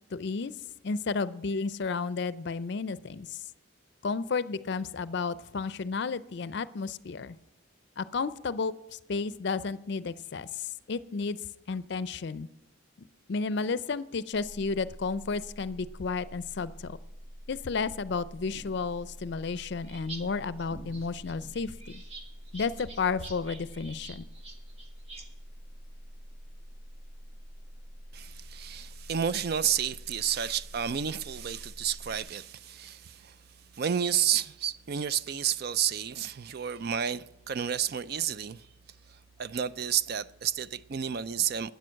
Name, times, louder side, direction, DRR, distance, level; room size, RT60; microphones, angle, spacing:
voice 1, 0.1-0.5 0.8-3.4 4.0-7.4 8.0-11.4 11.7-12.5 13.0-17.0 17.5-22.0 22.5-24.3, left 4 dB, 55° left, 0.5 m, -32 dB
sound 1, 14.3-32.2, equal, 75° right, 2.9 m, -47 dB
sound 2, 18.5-20.2 20.5-25.2, right 3 dB, 30° right, 1.6 m, -47 dB
voice 2, 28.1-33.3 33.8-38.7 39.4-41.7, right 8 dB, 50° right, 0.4 m, -31 dB
12.5 x 9.4 x 6.3 m
head